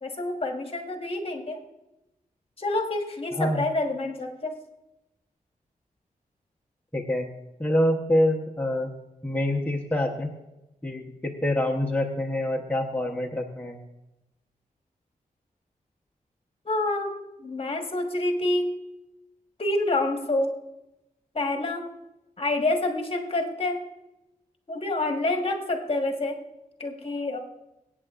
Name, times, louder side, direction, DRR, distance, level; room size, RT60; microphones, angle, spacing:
voice 1, 0.0-1.6 2.6-4.5 16.6-17.1 17.4-18.7 19.6-20.5 21.3-21.9 22.4-23.8 24.7-26.4 26.8-27.4, left 2 dB, 40° left, 3 dB, 1.4 m, -27 dB
voice 2, 3.3-3.6 6.9-7.3 7.6-8.9 9.2-10.3 10.8-13.8, left 1 dB, 10° left, -1 dB, 0.9 m, -26 dB
22.5 x 8.9 x 2.5 m, 0.94 s
wide cardioid pair, 130°, 15 cm